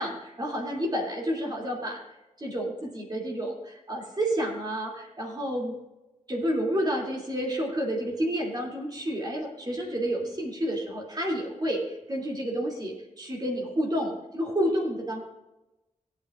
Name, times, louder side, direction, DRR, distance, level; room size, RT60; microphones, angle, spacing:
voice 1, 0.0-2.0 2.4-5.8 6.3-15.2, equal, 30° right, -1 dB, 2.6 m, -30 dB
17.5 x 9.1 x 2.5 m, 0.99 s
wide cardioid pair, 135°, 14 cm